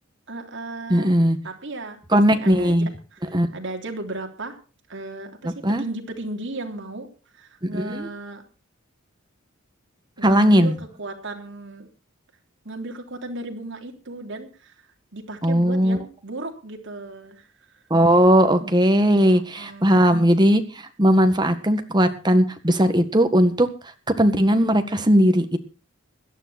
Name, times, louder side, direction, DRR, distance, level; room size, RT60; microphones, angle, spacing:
voice 1, 0.3-1.1 1.4-2.8 3.1-4.6 4.9-7.1 7.3-8.4 10.2-11.9 12.6-14.7 15.1-17.4 19.2-20.1, right 2 dB, 60° right, 3 dB, 3.4 m, -35 dB
voice 2, 0.9-1.4 2.1-2.9 3.3-3.5 5.4-5.8 7.6-8.1 10.2-10.8 15.4-16.0 17.9-23.7 24.2-25.6, equal, 20° right, 8 dB, 1.8 m, -18 dB
17.0 x 12.5 x 4.3 m, 0.36 s
head